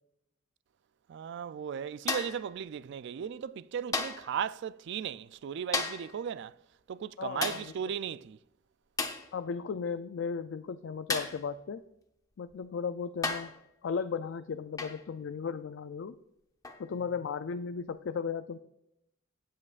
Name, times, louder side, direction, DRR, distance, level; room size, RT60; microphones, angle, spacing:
voice 1, 1.1-6.5 6.9-8.4, right 8 dB, 60° right, 0.3 m, -36 dB
sound 1, 2.1-2.5 3.9-4.3 5.7-6.1 7.4-7.7 9.0-9.3 11.1-11.4 12.5-12.6 13.2-13.6 14.8-15.0 16.6-16.8, left 3 dB, 20° left, 0.9 m, -33 dB
voice 2, 7.2-7.6 9.3-11.8 12.4-13.5 13.8-16.1 16.8-18.6, left 6 dB, 65° left, 0.4 m, -35 dB
17.5 x 7.4 x 2.5 m
head